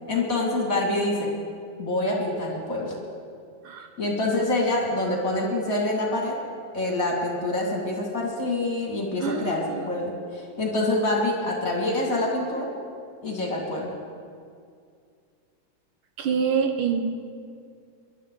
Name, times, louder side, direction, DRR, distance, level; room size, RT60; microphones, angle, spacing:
voice 1, 0.1-1.3 1.8-3.0 4.0-6.4 6.7-12.7 13.2-13.9, left 2 dB, 45° left, -1 dB, 2.6 m, -26 dB
voice 2, 9.2-9.9 16.2-17.0, right 6 dB, 85° right, 5 dB, 1.9 m, -26 dB
22.0 x 11.5 x 3.9 m, 2.3 s
omnidirectional pair, 2.2 m